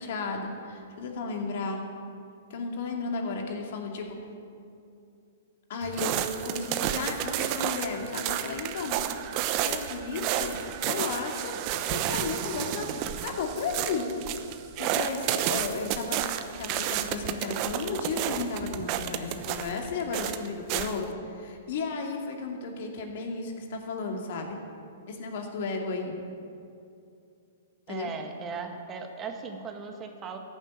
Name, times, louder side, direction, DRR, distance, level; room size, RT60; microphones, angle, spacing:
voice 1, 0.0-1.8 2.5-4.2 5.7-6.1 6.4-9.0 9.5-10.6 10.8-11.5 11.9-12.9 13.2-14.1 14.8-24.6 25.1-26.2 27.9-28.1, left 4 dB, 60° left, 2 dB, 2.4 m, -34 dB
sound 1, 5.8-21.0, right 11 dB, 40° right, 0.9 m, -31 dB
voice 2, 27.9-30.4, right 5 dB, 25° right, 4 dB, 1.8 m, -37 dB
14.5 x 7.4 x 9.5 m, 2.5 s
hypercardioid pair, 120°, 0 cm